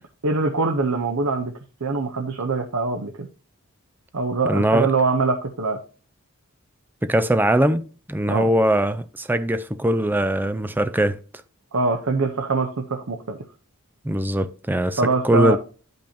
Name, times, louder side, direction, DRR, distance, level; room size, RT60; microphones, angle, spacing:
voice 1, 0.2-1.5 1.8-3.3 4.1-5.8 8.3-8.5 11.7-13.4 15.0-15.6, right 3 dB, 65° right, 0.8 m, -23 dB
voice 2, 4.5-4.9 7.0-7.8 8.1-11.2 14.0-15.6, right 1 dB, 10° right, 0.4 m, -21 dB
12.0 x 5.4 x 2.8 m
head